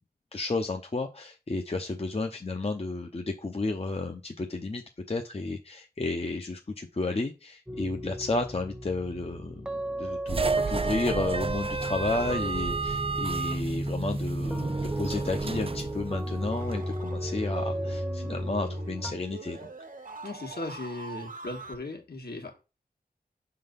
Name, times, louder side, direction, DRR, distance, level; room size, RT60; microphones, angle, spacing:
voice 1, 0.3-4.8 5.1-19.7, left 3 dB, 40° left, 4 dB, 0.7 m, -32 dB
sound 1, 7.7-19.1, right 1 dB, 5° right, 0.8 m, -34 dB
sound 2, 10.3-16.8, right 4 dB, 35° right, 0.4 m, -32 dB
sound 3, 15.0-21.8, right 3 dB, 55° right, 1.0 m, -44 dB
voice 2, 20.2-22.6, left 2 dB, 75° left, 1 dB, 1.8 m, -37 dB
5.3 x 3.9 x 5.2 m, 0.30 s
wide cardioid pair, 50°, 16 cm